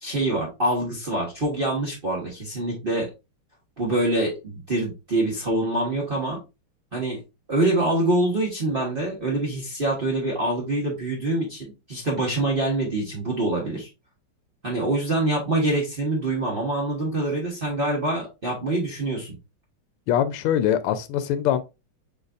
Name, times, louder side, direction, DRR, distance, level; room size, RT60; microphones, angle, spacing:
voice 1, 0.0-3.1 3.8-6.4 6.9-7.2 7.5-13.9 14.6-19.4, right 2 dB, 35° right, 1.0 m, -25 dB
voice 2, 20.1-21.6, left 10 dB, 85° left, 1.5 m, -23 dB
5.1 x 4.0 x 2.3 m
omnidirectional pair, 2.4 m